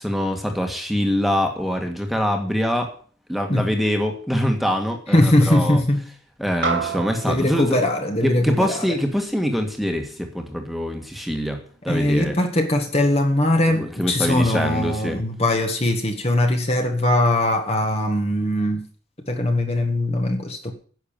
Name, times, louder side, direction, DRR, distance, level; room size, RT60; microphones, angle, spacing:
voice 1, 0.0-2.9 3.3-5.8 6.4-7.8 8.2-12.4 13.8-15.2, equal, ahead, 4 dB, 1.8 m, -24 dB
voice 2, 5.1-6.0 7.3-8.9 11.9-18.8 19.3-20.7, left 1 dB, 30° left, 4 dB, 1.6 m, -21 dB
sound 1, 6.6-11.3, right 5 dB, 60° right, 2.1 m, -32 dB
10.5 x 7.1 x 8.9 m, 0.43 s
head